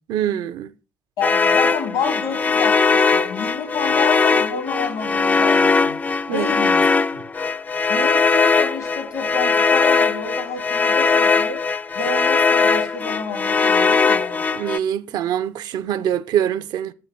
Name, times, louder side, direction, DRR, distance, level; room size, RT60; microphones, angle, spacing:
voice 1, 0.1-0.7 6.3-6.5 14.5-16.9, right 10 dB, 65° right, 0.5 m, -24 dB
voice 2, 1.2-6.0 6.3-6.8 7.1-7.2 7.9-11.6 11.9-14.4, left 5 dB, 80° left, 2.5 m, -29 dB
sound 1, 1.2-14.8, left 4 dB, 20° left, 0.3 m, -19 dB
6.7 x 6.5 x 4.2 m
hypercardioid pair, 55°, 8 cm